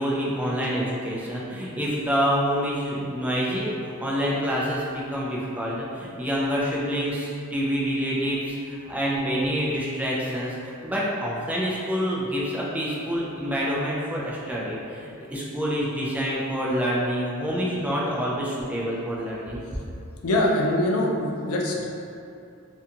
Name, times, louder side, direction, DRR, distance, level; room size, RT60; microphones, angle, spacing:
voice 1, 0.0-19.6, equal, 5° right, -6 dB, 0.3 m, -27 dB
voice 2, 20.2-21.8, left 1 dB, 85° left, -2 dB, 0.4 m, -23 dB
2.5 x 2.2 x 2.8 m, 2.6 s
head